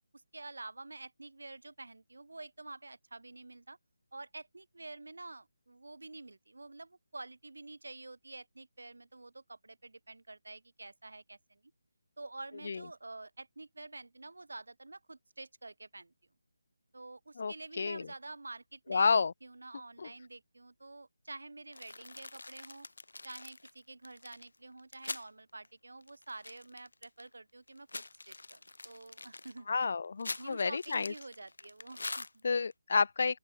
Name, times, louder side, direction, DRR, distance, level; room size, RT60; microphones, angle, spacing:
voice 1, 0.1-3.8 4.1-11.6 12.2-16.1 16.9-22.9 23.2-29.7 30.4-32.4, right 2 dB, 90° right, 3.9 m, -48 dB
voice 2, 17.4-18.1 18.9-19.3 20.0-20.1 29.7-31.1 32.4-33.4, left 5 dB, 50° left, 0.4 m, -30 dB
sound 1, 21.7-25.3 25.6-25.7 26.0-27.3 27.7-32.7, left 2 dB, 85° left, 0.9 m, -45 dB
open air
figure-of-eight pair, 170°, 0 cm